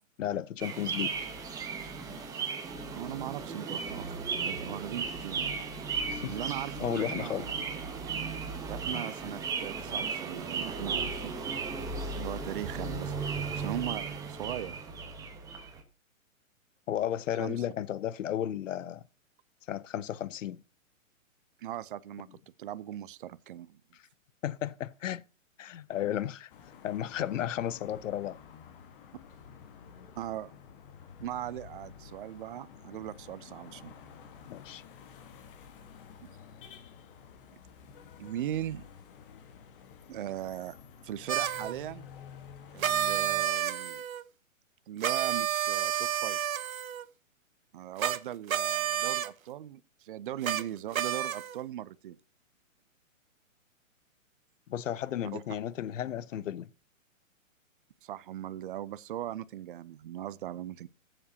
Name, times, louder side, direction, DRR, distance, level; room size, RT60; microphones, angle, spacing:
voice 1, 0.2-1.1 6.1-6.4 6.8-7.5 16.9-19.0 19.7-20.6 24.4-25.2 25.6-26.5 26.8-28.4 34.5-34.8 54.7-56.7, left 11 dB, 65° left, 0.7 m, -33 dB
sound 1, 0.6-15.8, right 5 dB, 10° right, 0.9 m, -36 dB
voice 2, 2.9-4.2 4.5-5.6 6.2-7.7 8.7-11.4 12.2-13.1 13.5-14.8 17.4-17.6 21.6-22.3 22.6-23.8 30.2-30.5 31.2-33.9 36.2-36.4 38.2-38.9 40.1-40.8 41.0-42.1 42.7-44.0 44.9-46.4 47.7-52.2 55.3-55.4 58.0-60.9, right 12 dB, 40° right, 0.5 m, -39 dB
sound 2, 26.5-43.4, left 7 dB, 40° left, 1.4 m, -51 dB
sound 3, 41.3-41.7 42.8-44.2 45.0-47.0 48.0-48.2 48.5-49.3 50.4-50.6 50.9-51.6, right 10 dB, 80° right, 0.9 m, -30 dB
18.0 x 7.6 x 2.7 m
hypercardioid pair, 150°, 41 cm